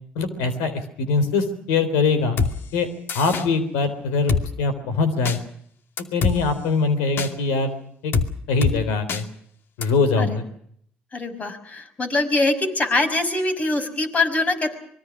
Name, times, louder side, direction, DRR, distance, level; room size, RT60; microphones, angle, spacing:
voice 1, 0.2-2.4 2.7-2.9 3.1-4.3 4.6-5.4 6.1-7.7 8.0-8.1 8.5-9.2 9.8-10.4, left 4 dB, 85° left, 12 dB, 3.8 m, -22 dB
Drum kit, 2.4-2.5 3.1-3.5 4.3-4.4 5.3-5.4 6.0-6.4 7.2-7.3 8.1-8.3 8.6-8.8 9.1-9.2 9.8-9.9, left 5 dB, 60° left, 2.5 m, -22 dB
voice 2, 11.1-14.7, left 2 dB, 35° left, 7 dB, 6.0 m, -23 dB
25.5 x 22.5 x 6.2 m, 0.67 s
supercardioid pair, 70°, 4 cm